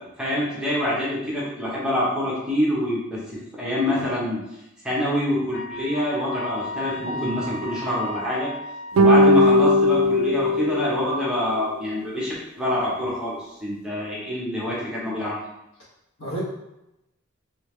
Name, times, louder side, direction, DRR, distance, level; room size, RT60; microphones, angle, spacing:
voice 1, 0.2-4.4 4.8-8.5 9.0-15.4, left 1 dB, 5° right, -7 dB, 1.0 m, -26 dB
Wind instrument woodwind instrument, 5.5-9.4, left 1 dB, 60° left, 0.5 m, -35 dB
voice 2, 7.0-7.5 16.2-16.4, equal, 80° left, -6 dB, 1.5 m, -33 dB
sound 1, 9.0-11.5, left 1 dB, 70° right, 0.3 m, -18 dB
3.3 x 3.3 x 3.2 m, 0.89 s
head